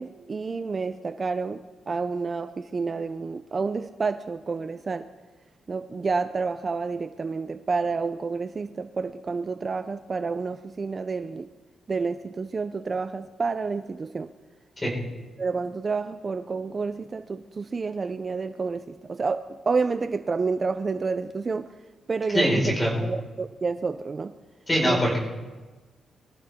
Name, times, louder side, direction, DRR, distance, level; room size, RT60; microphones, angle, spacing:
voice 1, 0.0-5.1 5.7-11.5 11.9-14.3 15.4-21.7 22.1-22.7 23.0-24.4 24.8-25.0, right 4 dB, 35° right, 0.5 m, -29 dB
voice 2, 22.3-22.9 24.7-25.2, equal, 15° left, 4.9 m, -22 dB
23.5 x 14.5 x 3.6 m
cardioid pair, 115°, 0 cm